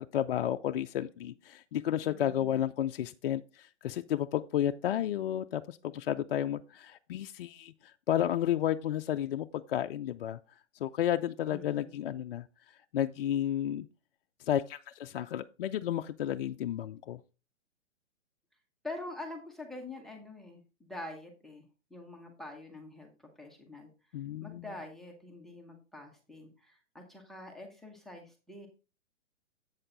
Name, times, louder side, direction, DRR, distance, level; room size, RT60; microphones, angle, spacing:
voice 1, 0.0-10.4 10.8-12.5 12.9-13.9 14.4-17.2 24.1-24.7, left 11 dB, 55° left, 0.5 m, -32 dB
voice 2, 2.0-2.6 11.5-12.0 18.8-23.9 24.4-28.7, left 2 dB, ahead, 0.9 m, -46 dB
8.0 x 6.5 x 3.8 m
hypercardioid pair, 140°, 35 cm